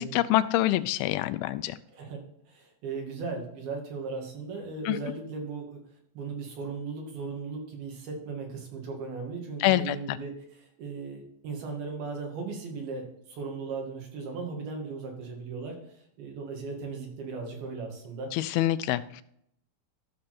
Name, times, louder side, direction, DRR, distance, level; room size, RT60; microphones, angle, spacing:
voice 1, 0.0-1.8 4.9-5.0 9.6-10.2 18.3-19.2, left 15 dB, 90° left, 13 dB, 2.5 m, -26 dB
voice 2, 1.9-5.8 6.1-18.3, right 4 dB, 80° right, 0 dB, 4.3 m, -37 dB
13.5 x 6.5 x 4.4 m, 0.71 s
omnidirectional pair, 4.3 m